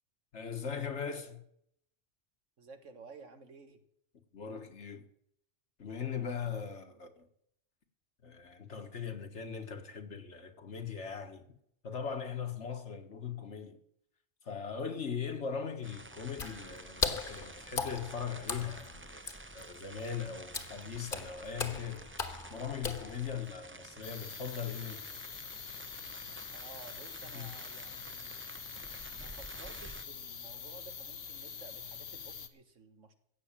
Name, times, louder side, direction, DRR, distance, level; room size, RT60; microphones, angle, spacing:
voice 1, 0.3-1.4 4.3-5.1 5.8-7.3 8.2-11.5 11.8-13.8 14.4-22.1 22.5-25.0 27.3-27.5, left 7 dB, 70° left, 1.7 m, -40 dB
voice 2, 2.6-3.8 6.9-7.0 26.5-28.4 29.1-33.1, right 4 dB, 85° right, 1.8 m, -54 dB
sound 1, 15.8-30.1, right 2 dB, 20° right, 0.3 m, -50 dB
Water / Splash splatter, 16.3-23.5, left 4 dB, 45° left, 1.5 m, -39 dB
sound 2, 24.0-32.5, left 7 dB, 90° left, 1.5 m, -45 dB
16.0 x 6.4 x 8.8 m
omnidirectional pair, 1.2 m